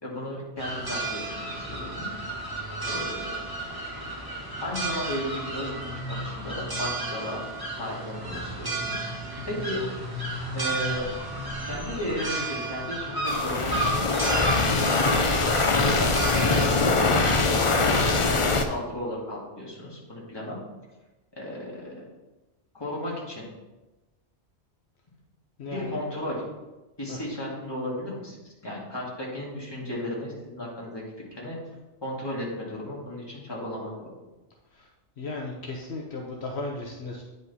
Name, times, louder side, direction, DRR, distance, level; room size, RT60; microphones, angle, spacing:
voice 1, 0.0-2.1 2.9-3.2 4.6-7.4 7.8-9.8 10.5-11.1 11.7-14.0 15.2-17.9 18.3-20.6 21.3-22.0 22.7-23.5 25.7-26.4 27.0-31.0 31.3-31.6 32.0-33.9, left 1 dB, 20° left, -5 dB, 2.2 m, -34 dB
sound 1, 0.6-18.1, right 1 dB, 20° right, 1.5 m, -32 dB
sound 2, 13.3-18.6, left 3 dB, 35° left, 0.5 m, -23 dB
voice 2, 25.6-26.0 27.1-27.2 34.7-34.9 35.2-37.2, left 2 dB, 65° left, 0 dB, 1.1 m, -36 dB
9.3 x 5.3 x 4.1 m, 1.1 s
omnidirectional pair, 1.2 m